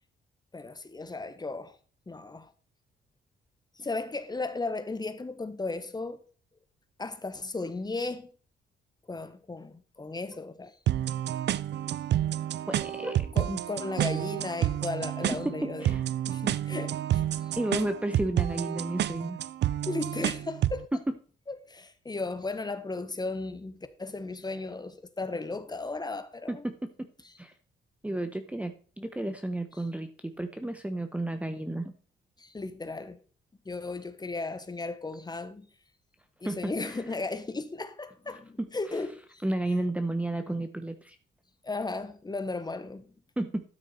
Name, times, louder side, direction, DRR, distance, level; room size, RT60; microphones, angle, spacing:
voice 1, 0.5-1.8 2.1-2.5 3.8-6.2 7.0-8.3 9.1-10.8 13.3-15.9 16.3-17.5 19.9-20.9 21.5-26.6 32.4-33.2 33.6-35.7 36.4-39.4 41.6-43.1, left 3 dB, 20° left, 1.3 m, -35 dB
sound 1, 10.9-20.8, right 12 dB, 60° right, 0.5 m, -29 dB
voice 2, 12.7-13.6 15.8-16.0 17.6-19.4 20.9-21.0 26.5-26.9 27.4-27.5 28.0-31.9 36.4-37.0 39.4-41.2 43.4-43.6, right 1 dB, 5° right, 0.9 m, -32 dB
12.5 x 6.3 x 4.3 m
cardioid pair, 90°, 20 cm